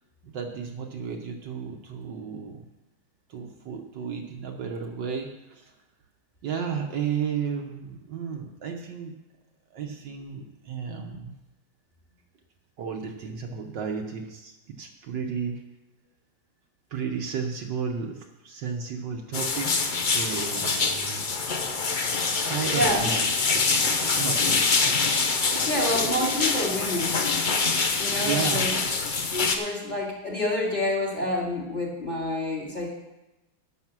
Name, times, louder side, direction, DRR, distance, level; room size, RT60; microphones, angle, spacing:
voice 1, 0.2-2.6 3.3-5.7 6.4-9.1 9.7-11.3 12.8-15.6 16.9-21.2 22.5-24.8 25.3-25.7 28.2-28.7, right 6 dB, 65° right, 2 dB, 1.5 m, -33 dB
sound 1, 19.3-29.6, left 4 dB, 90° left, 0.4 m, -25 dB
voice 2, 22.7-23.1 25.7-27.3 28.0-28.7 29.3-32.9, left 1 dB, 20° left, -2 dB, 2.3 m, -28 dB
11.5 x 7.0 x 6.1 m, 1.0 s
omnidirectional pair, 2.2 m